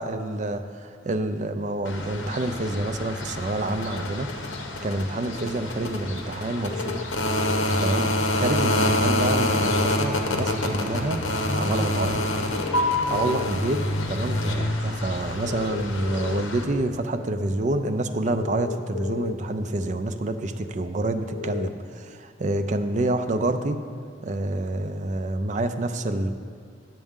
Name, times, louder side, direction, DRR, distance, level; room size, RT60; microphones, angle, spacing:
voice 1, 0.0-0.7 1.1-4.3 4.8-7.0 7.8-11.2 11.5-12.3 13.1-13.8 14.1-23.8 24.2-26.3, right 2 dB, 40° right, 8 dB, 0.4 m, -27 dB
sound 1, 1.8-16.6, left 1 dB, 80° left, 1.0 m, -27 dB
sound 2, 6.6-7.6 9.6-10.5 12.5-13.5 15.4-16.4 18.4-19.3 21.3-21.7, left 7 dB, 50° left, 0.3 m, -34 dB
11.5 x 7.5 x 3.7 m, 2.2 s
head